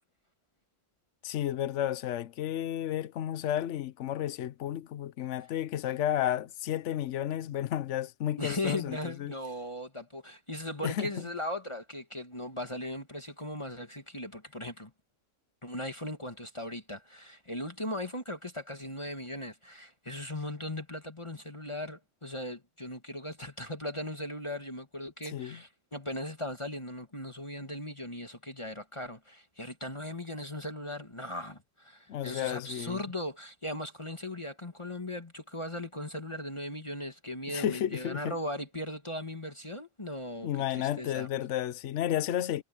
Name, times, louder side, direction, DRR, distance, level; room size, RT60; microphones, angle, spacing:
voice 1, 1.2-9.3 10.8-11.1 25.3-25.6 32.1-33.0 37.5-38.3 40.4-42.6, left 11 dB, 65° left, 1.0 m, -32 dB
voice 2, 8.4-14.9 15.6-41.3, left 1 dB, 20° left, 1.9 m, -38 dB
omnidirectional pair, 1.4 m